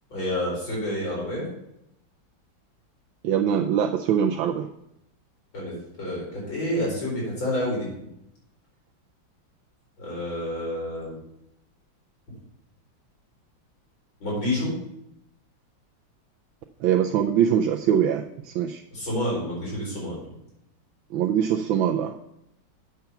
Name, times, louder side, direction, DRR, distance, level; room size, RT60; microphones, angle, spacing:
voice 1, 0.1-1.4 5.5-8.1 10.0-11.1 14.2-14.7 18.9-20.2, left 1 dB, 85° left, -5 dB, 5.1 m, -29 dB
voice 2, 3.2-4.7 16.8-18.8 21.1-22.2, right 9 dB, 85° right, 2 dB, 1.4 m, -23 dB
7.9 x 7.0 x 5.7 m, 0.81 s
omnidirectional pair, 2.1 m